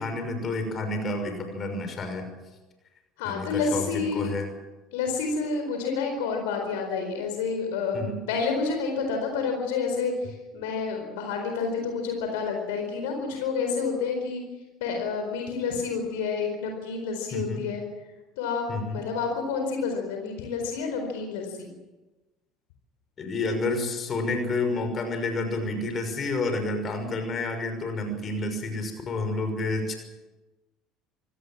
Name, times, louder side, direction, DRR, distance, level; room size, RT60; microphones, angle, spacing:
voice 1, 0.0-2.3 3.2-4.5 7.9-8.2 17.3-17.6 18.7-19.0 23.2-29.9, left 2 dB, 35° left, 6 dB, 6.0 m, -29 dB
voice 2, 3.2-4.3 4.9-8.0 8.3-14.4 14.8-17.8 18.4-21.7, left 5 dB, 65° left, 4 dB, 4.4 m, -29 dB
25.5 x 18.5 x 7.5 m, 1.1 s
figure-of-eight pair, 65°, 0 cm